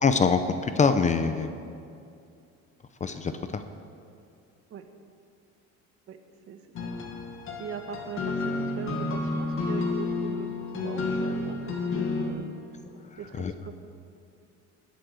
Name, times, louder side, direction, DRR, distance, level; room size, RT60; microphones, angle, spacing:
voice 1, 0.0-1.5 3.0-3.6 13.4-13.5, left 5 dB, 25° left, 9 dB, 0.7 m, -24 dB
voice 2, 6.5-6.9 7.6-12.5 13.2-13.7, right 6 dB, 50° right, 7 dB, 1.4 m, -40 dB
sound 1, 6.7-12.3, left 3 dB, 45° left, 2.2 m, -30 dB
20.0 x 8.4 x 6.6 m, 2.4 s
cardioid pair, 135°, 30 cm